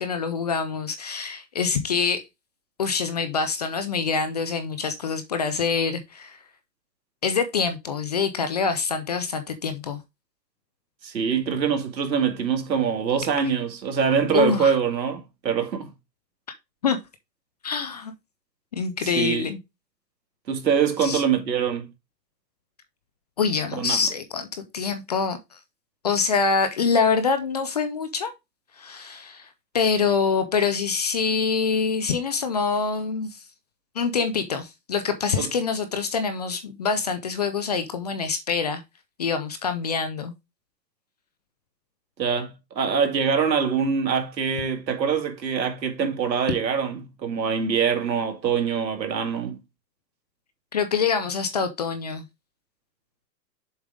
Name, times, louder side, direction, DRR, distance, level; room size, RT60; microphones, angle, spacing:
voice 1, 0.0-2.3 2.8-6.4 7.2-10.0 14.3-14.8 16.8-17.0 17.6-18.1 18.7-19.6 21.0-21.2 23.4-24.5 24.7-25.6 26.0-28.3 28.8-29.5 29.7-33.4 34.0-38.8 39.2-40.3 50.7-52.2, left 5 dB, 25° left, 0.4 m, -25 dB
voice 2, 11.0-15.9 19.0-19.5 20.5-21.9 23.8-24.0 35.4-35.5 42.2-49.6, right 6 dB, 85° right, 2.2 m, -24 dB
7.2 x 4.8 x 3.6 m
hypercardioid pair, 145°, 50 cm